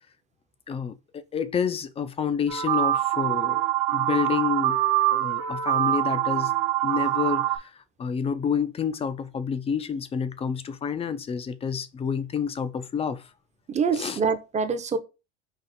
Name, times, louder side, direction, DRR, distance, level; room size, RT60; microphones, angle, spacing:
voice 1, 0.7-3.6 3.9-4.8 5.1-6.5 6.8-13.3 13.9-14.2, left 6 dB, 20° left, 0.3 m, -29 dB
sound 1, 2.5-7.6, right 13 dB, 60° right, 1.1 m, -24 dB
voice 2, 13.7-15.0, right 5 dB, 20° right, 0.6 m, -25 dB
4.1 x 2.5 x 4.1 m
supercardioid pair, 105°, 34 cm